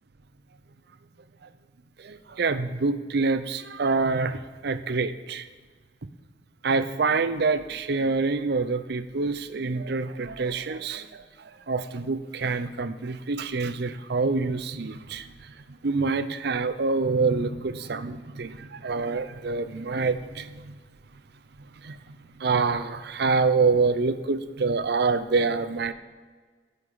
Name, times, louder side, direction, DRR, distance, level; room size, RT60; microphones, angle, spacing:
voice 1, 2.0-5.5 6.6-20.8 21.8-25.9, right 4 dB, 65° right, 13 dB, 0.6 m, -26 dB
9.9 x 8.0 x 5.6 m, 1.5 s
head